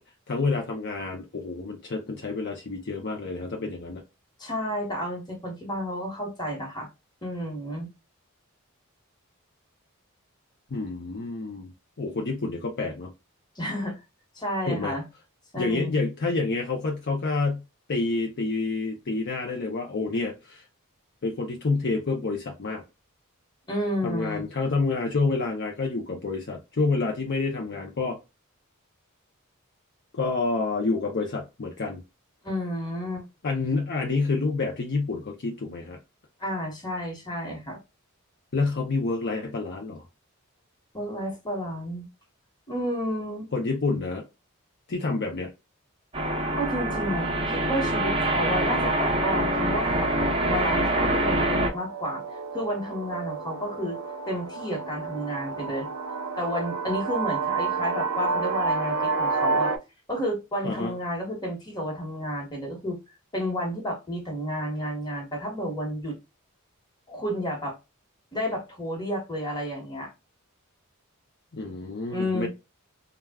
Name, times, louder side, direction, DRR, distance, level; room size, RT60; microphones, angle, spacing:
voice 1, 0.3-4.0 10.7-11.7 12.0-13.1 14.7-15.0 15.6-17.6 17.9-20.6 21.2-22.8 24.0-28.2 30.1-32.0 33.4-36.0 38.5-40.0 43.5-44.2 44.9-45.5 60.6-60.9 71.5-72.5, left 3 dB, 50° left, 0.6 m, -28 dB
voice 2, 4.4-6.9 7.2-7.9 13.5-14.0 14.3-15.0 15.5-16.0 23.7-24.4 32.4-33.3 36.4-37.8 40.9-42.0 42.7-43.4 46.6-50.1 50.5-52.2 52.5-54.0 54.3-55.9 56.4-59.7 60.1-63.0 63.3-66.2 67.1-67.8 68.3-70.1 72.1-72.5, equal, 20° left, 1.3 m, -31 dB
sound 1, 46.1-51.7, right 1 dB, 25° right, 0.7 m, -25 dB
sound 2, 51.0-59.8, right 4 dB, 80° right, 0.6 m, -30 dB
3.3 x 2.3 x 2.3 m
head